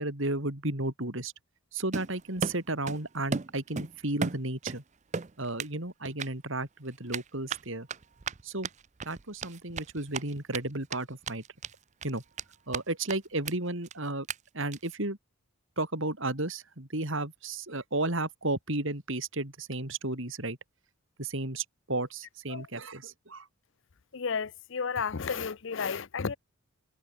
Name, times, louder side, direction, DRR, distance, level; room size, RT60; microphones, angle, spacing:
voice 1, 0.0-1.3 1.7-4.8 5.4-7.9 8.4-8.7 9.0-11.4 12.0-12.2 12.7-14.3 14.5-15.2 15.8-20.6 21.2-23.5, right 2 dB, 60° right, 3.9 m, -33 dB
Run, 1.9-3.0 3.3-4.8 5.1-5.7 6.1-6.3 7.1-10.6 10.9-11.0 11.2-11.7 12.0-12.8 13.1-13.2 13.5-13.6 13.8-13.9 14.3-14.4 14.7-15.0, right 5 dB, 35° right, 0.5 m, -35 dB
voice 2, 24.1-26.4, left 5 dB, 60° left, 0.6 m, -32 dB
head